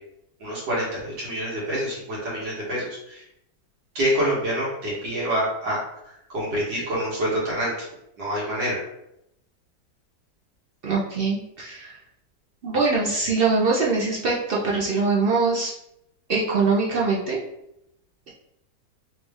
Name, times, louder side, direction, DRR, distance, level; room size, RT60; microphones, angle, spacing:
voice 1, 0.4-3.2 4.0-5.8 6.0-7.9 8.2-8.8, equal, 85° right, -7 dB, 2.0 m, -27 dB
voice 2, 10.8-11.9 12.6-15.7 16.3-17.4, right 4 dB, 65° right, -5 dB, 0.5 m, -23 dB
3.8 x 2.5 x 3.5 m, 0.80 s
omnidirectional pair, 1.9 m